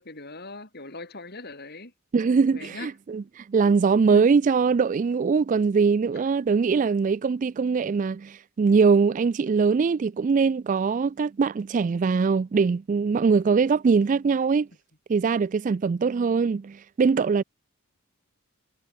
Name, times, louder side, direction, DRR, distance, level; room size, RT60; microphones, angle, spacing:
voice 1, 0.0-1.9 2.5-2.9 4.1-4.2, left 2 dB, 45° left, 6.1 m, -40 dB
voice 2, 2.1-14.7 15.1-17.4, right 5 dB, 35° right, 0.3 m, -22 dB
head